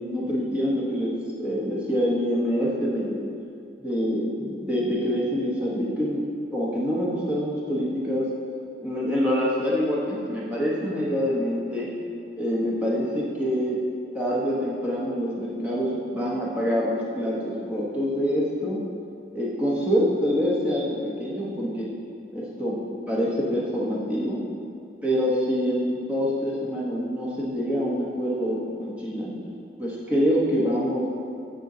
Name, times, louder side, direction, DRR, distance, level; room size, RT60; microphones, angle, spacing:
voice 1, 0.0-3.2 3.8-6.2 6.5-8.3 8.8-11.9 12.4-13.8 14.1-18.8 19.3-21.9 22.3-22.7 23.1-24.4 25.0-29.3 29.8-31.1, equal, 10° right, -6 dB, 0.9 m, -26 dB
9.9 x 3.8 x 2.7 m, 2.4 s
head